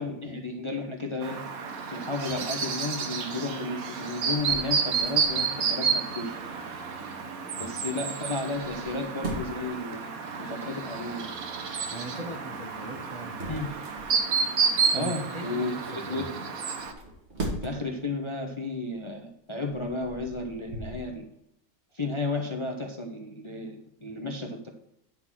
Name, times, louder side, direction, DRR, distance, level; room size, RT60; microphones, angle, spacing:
voice 1, 0.0-1.4 1.9-6.3 7.6-10.1 10.4-11.3 13.5-13.7 14.9-16.3 17.6-21.3 21.9-24.7, left 2 dB, 25° left, 2 dB, 0.7 m, -33 dB
Chirp tweet, 1.2-16.9, right 5 dB, 85° right, 1.4 m, -30 dB
sound 1, 4.2-5.5 8.5-9.7 12.6-14.5 16.7-18.0 18.6-18.8 19.5-21.0, right 2 dB, 50° right, 2.1 m, -39 dB
voice 2, 7.6-8.0 11.9-13.7 14.9-16.3, right 1 dB, 30° right, 2 dB, 0.9 m, -40 dB
10.5 x 3.9 x 6.1 m, 0.77 s
omnidirectional pair, 1.5 m